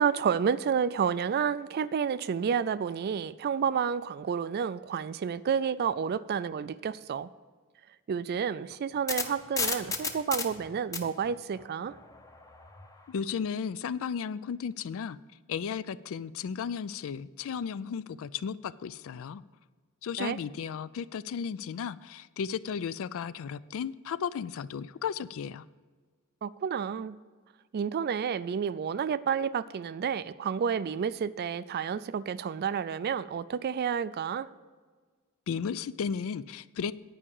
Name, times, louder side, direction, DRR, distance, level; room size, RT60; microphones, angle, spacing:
voice 1, 0.0-7.3 8.1-12.0 20.2-20.4 26.4-27.2 27.7-34.5, right 7 dB, 45° right, 16 dB, 0.3 m, -30 dB
sound 1, 8.7-12.9, left 4 dB, 15° left, 0.7 m, -34 dB
voice 2, 13.1-15.2 15.5-19.4 20.0-25.6 35.5-36.9, left 7 dB, 65° left, 17 dB, 0.3 m, -34 dB
9.9 x 4.9 x 7.0 m, 1.5 s
head